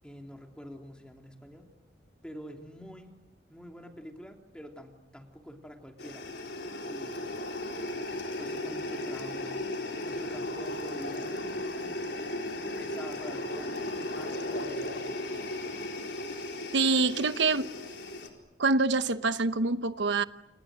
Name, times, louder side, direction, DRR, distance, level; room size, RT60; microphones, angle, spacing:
voice 1, 0.0-1.7 2.2-3.2 3.5-6.3 6.8-7.4 8.1-9.6 10.0-12.0 12.6-15.6, equal, 5° left, 3.2 m, -47 dB
sound 1, 6.0-18.3, left 1 dB, 70° left, 4.4 m, -36 dB
voice 2, 16.7-17.7 18.6-20.2, right 3 dB, 80° right, 1.0 m, -25 dB
29.5 x 29.0 x 6.4 m
head